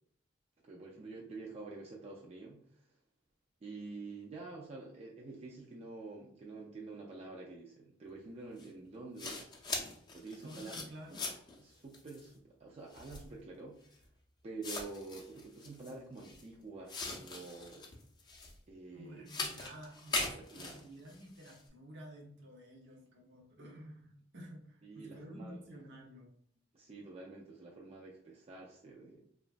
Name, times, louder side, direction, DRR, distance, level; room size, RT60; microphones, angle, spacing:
voice 1, 0.6-2.9 3.6-9.5 10.1-10.7 11.1-11.2 11.6-14.1 14.4-17.9 18.7-19.2 20.2-20.9 24.8-25.6 26.7-29.2, right 3 dB, 35° right, -2 dB, 0.4 m, -48 dB
sound 1, 8.6-8.7 9.2-11.6 11.9-12.3 12.9-13.3 14.0-14.1 14.6-16.4 16.9-18.6 19.3-21.6, left 3 dB, 20° left, 0.5 m, -41 dB
voice 2, 10.4-11.2 18.9-26.3, equal, 65° right, 0 dB, 0.8 m, -51 dB
2.9 x 2.2 x 2.5 m, 0.63 s
head